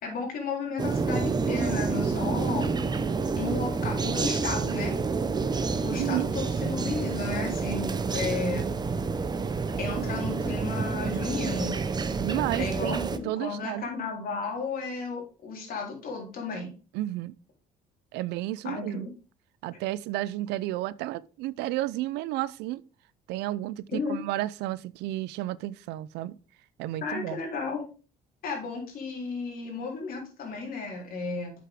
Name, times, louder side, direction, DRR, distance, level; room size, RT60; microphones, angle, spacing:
voice 1, 0.0-2.7 3.4-4.9 5.8-8.7 9.8-11.8 12.6-16.7 18.6-19.1 23.9-24.2 27.0-27.8 28.4-31.5, left 4 dB, 60° left, 3.7 m, -33 dB
sound 1, 0.8-13.2, right 4 dB, 25° right, 0.7 m, -28 dB
voice 2, 5.9-6.3 9.9-10.0 12.2-13.9 16.9-17.3 18.1-19.1 19.6-22.8 23.3-26.4 26.8-27.4, right 15 dB, 90° right, 0.4 m, -32 dB
7.6 x 6.7 x 3.6 m
cardioid pair, 110°, 17 cm